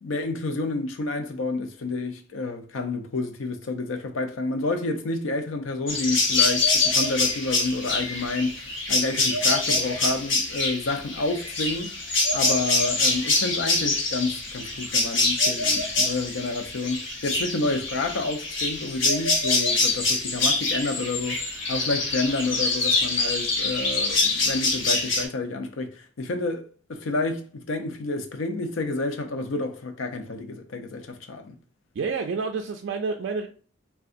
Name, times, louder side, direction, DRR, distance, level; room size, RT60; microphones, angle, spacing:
voice 1, 0.0-11.9 12.3-31.5, left 3 dB, 90° left, 0.5 m, -29 dB
sound 1, 5.9-25.2, left 3 dB, 70° left, 0.9 m, -25 dB
voice 2, 32.0-33.5, right 4 dB, 65° right, 0.3 m, -29 dB
3.6 x 2.3 x 2.5 m
head